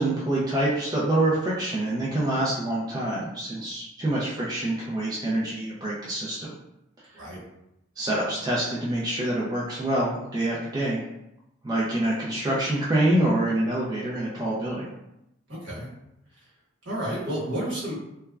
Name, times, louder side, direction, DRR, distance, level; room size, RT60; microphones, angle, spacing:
voice 1, 0.0-6.5 7.1-7.2 8.0-11.1 11.6-14.9, right 1 dB, 20° right, -6 dB, 0.4 m, -26 dB
voice 2, 15.5-15.9 16.8-17.9, right 1 dB, 65° right, -7 dB, 1.2 m, -31 dB
3.1 x 2.3 x 2.3 m, 0.85 s
head